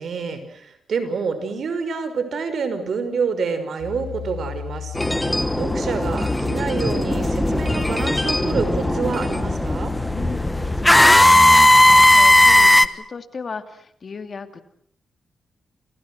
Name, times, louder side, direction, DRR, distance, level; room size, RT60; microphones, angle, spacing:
voice 1, 0.0-9.9, right 5 dB, 65° right, 10 dB, 5.7 m, -27 dB
sound 1, 3.8-12.7, left 10 dB, 90° left, 4.3 m, -34 dB
sound 2, 4.9-12.9, left 1 dB, 10° left, 1.3 m, -17 dB
voice 2, 10.1-14.6, left 5 dB, 50° left, 9 dB, 2.6 m, -36 dB
29.5 x 29.0 x 6.4 m, 0.65 s
cardioid pair, 85°, 0 cm